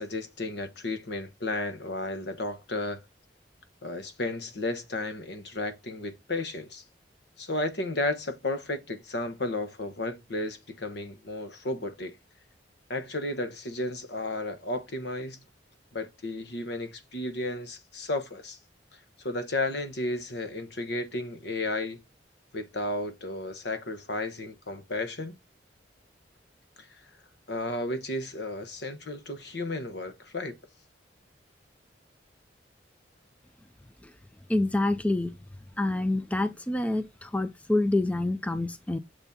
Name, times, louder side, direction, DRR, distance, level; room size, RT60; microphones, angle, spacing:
voice 1, 0.0-3.0 3.8-6.8 7.4-12.2 12.9-15.4 15.9-18.6 19.2-22.0 22.5-25.4 26.8-27.0 27.5-30.6, left 2 dB, 70° left, 1.2 m, -33 dB
voice 2, 34.5-35.3 35.8-39.0, left 2 dB, 10° left, 0.4 m, -27 dB
6.9 x 4.2 x 3.6 m
head